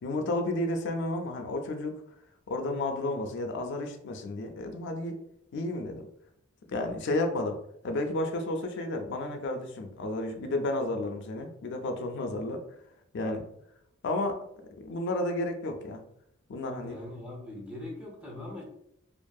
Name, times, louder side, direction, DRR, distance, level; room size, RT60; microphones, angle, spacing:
voice 1, 0.0-2.0 2.5-5.2 5.5-6.1 6.7-7.6 7.8-12.6 13.1-13.4 14.0-14.4 14.8-16.0 16.5-17.0, left 2 dB, 60° left, 4 dB, 0.4 m, -32 dB
voice 2, 16.8-18.6, left 1 dB, 5° right, -3 dB, 0.5 m, -41 dB
2.6 x 2.4 x 2.2 m, 0.74 s
head